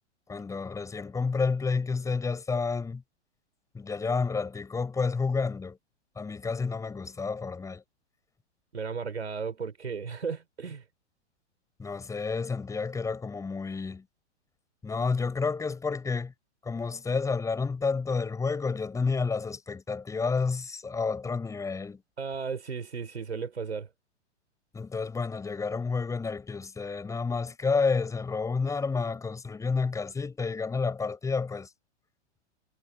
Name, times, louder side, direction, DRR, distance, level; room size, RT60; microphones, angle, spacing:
voice 1, 0.3-3.0 3.7-5.8 6.2-7.8 11.8-14.1 14.8-16.3 16.6-22.0 24.7-31.7, left 4 dB, 10° left, 6.1 m, -30 dB
voice 2, 8.7-10.8 22.2-23.9, right 5 dB, 65° right, 5.1 m, -35 dB
figure-of-eight pair, 110°, 36 cm